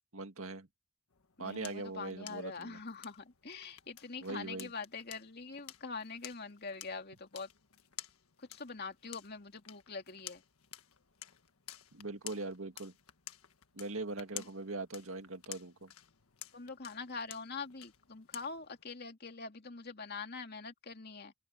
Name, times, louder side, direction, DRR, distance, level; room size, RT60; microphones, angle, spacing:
voice 1, 0.1-0.7 1.4-2.8 4.2-4.7 11.9-12.9 13.7-15.9, right 3 dB, 70° right, 2.1 m, -41 dB
sound 1, 1.1-18.8, left 12 dB, 80° left, 1.5 m, -53 dB
voice 2, 1.4-7.5 8.4-10.4 14.3-14.5 16.5-21.3, left 4 dB, 50° left, 2.6 m, -44 dB
open air
head